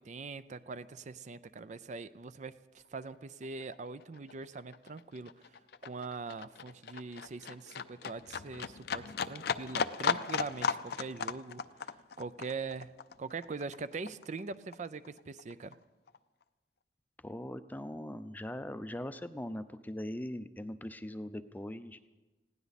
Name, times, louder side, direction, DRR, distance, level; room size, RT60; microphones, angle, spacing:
voice 1, 0.0-5.5 5.8-12.9 13.2-15.8, right 4 dB, 45° right, 14 dB, 0.5 m, -42 dB
Livestock farm animals working animals, 3.0-3.2 3.4-14.4 14.7-15.7 16.1-16.2, left 6 dB, 60° left, 0.5 m, -36 dB
voice 2, 17.2-22.0, left 1 dB, 10° left, 11 dB, 0.5 m, -41 dB
20.0 x 16.5 x 4.1 m, 1.2 s
head